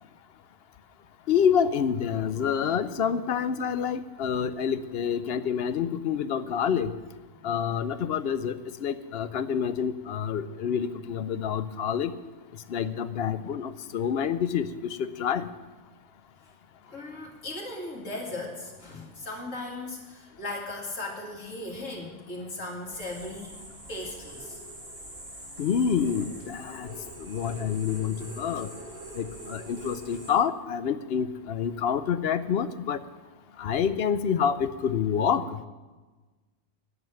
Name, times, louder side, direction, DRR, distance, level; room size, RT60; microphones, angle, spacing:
voice 1, 1.3-6.9 7.4-8.6 8.8-12.1 12.7-15.5 25.6-26.9 27.2-28.7 29.1-33.0 33.6-35.6, left 7 dB, 60° left, 13 dB, 0.8 m, -27 dB
voice 2, 16.8-23.5 23.9-24.6, left 2 dB, 85° left, -1 dB, 2.8 m, -37 dB
sound 1, 22.9-30.3, right 1 dB, 55° right, 3.1 m, -44 dB
11.0 x 7.6 x 9.1 m, 1.3 s
omnidirectional pair, 1.3 m